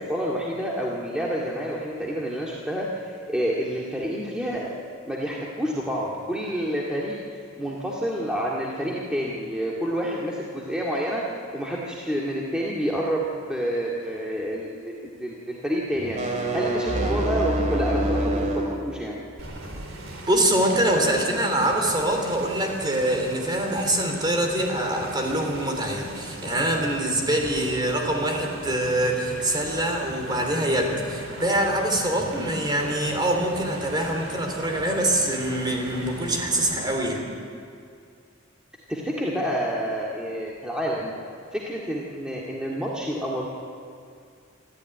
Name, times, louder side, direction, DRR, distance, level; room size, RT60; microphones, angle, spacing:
voice 1, 0.0-4.7 5.1-11.2 11.5-19.2 38.9-41.1 41.5-43.5, equal, 5° right, -4 dB, 2.1 m, -29 dB
sound 1, 16.0-18.8, right 1 dB, 40° right, 2.7 m, -25 dB
sound 2, 19.4-37.0, right 1 dB, 75° right, 3.9 m, -39 dB
voice 2, 20.3-37.3, right 1 dB, 20° right, 2 dB, 3.4 m, -24 dB
26.5 x 14.0 x 9.2 m, 2.3 s
head